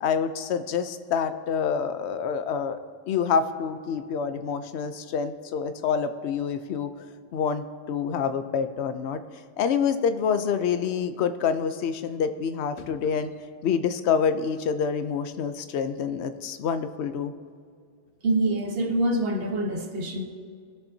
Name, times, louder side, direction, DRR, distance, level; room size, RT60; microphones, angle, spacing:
voice 1, 0.0-2.8 3.1-6.9 7.3-9.2 9.6-13.3 13.6-17.3, left 6 dB, 65° left, 10 dB, 0.9 m, -27 dB
voice 2, 18.2-20.2, right 1 dB, 55° right, 4 dB, 1.2 m, -25 dB
19.5 x 7.1 x 2.7 m, 2.1 s
omnidirectional pair, 1.2 m